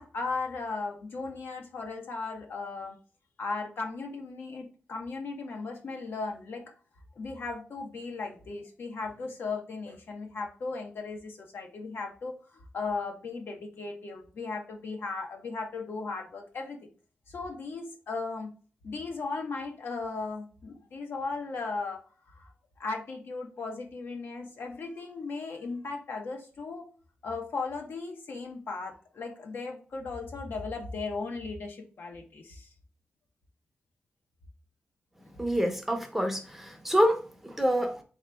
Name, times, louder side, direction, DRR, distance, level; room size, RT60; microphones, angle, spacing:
voice 1, 0.0-3.0 3.4-6.7 7.2-16.9 17.3-18.5 18.8-22.0 22.3-22.5 22.8-26.9 27.2-32.7, left 3 dB, 65° left, 2 dB, 1.0 m, -37 dB
voice 2, 35.4-38.0, equal, 5° right, 4 dB, 0.8 m, -27 dB
3.9 x 3.0 x 3.4 m, 0.39 s
wide cardioid pair, 110°, 4 cm